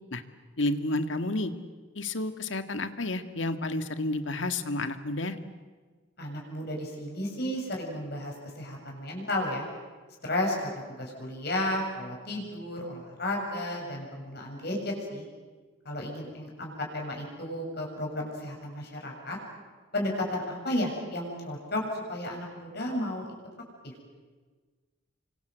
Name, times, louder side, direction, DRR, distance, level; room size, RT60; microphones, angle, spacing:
voice 1, 0.6-1.5 1.9-5.4, left 2 dB, 70° left, 9 dB, 1.8 m, -30 dB
voice 2, 6.2-9.6 10.2-15.2 15.8-19.4 19.9-23.3 23.8-23.9, left 1 dB, 55° left, 0 dB, 7.7 m, -33 dB
29.5 x 25.0 x 8.1 m, 1.4 s
head